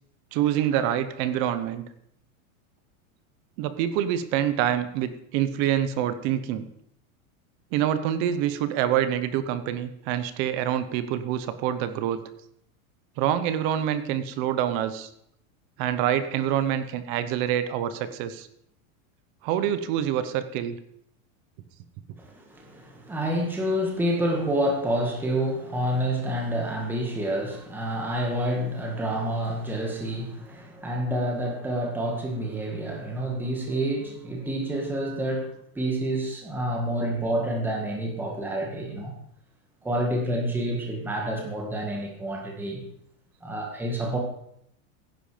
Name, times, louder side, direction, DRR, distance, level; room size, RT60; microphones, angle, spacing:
voice 1, 0.3-1.9 3.6-6.7 7.7-12.2 13.2-15.1 15.8-18.5 19.4-20.8, right 10 dB, 30° right, 12 dB, 0.8 m, -26 dB
voice 2, 22.2-35.5 35.8-39.1 39.8-42.8 43.4-44.2, right 1 dB, 5° right, 0 dB, 1.9 m, -28 dB
16.0 x 10.5 x 5.0 m, 0.72 s
supercardioid pair, 175°, 42 cm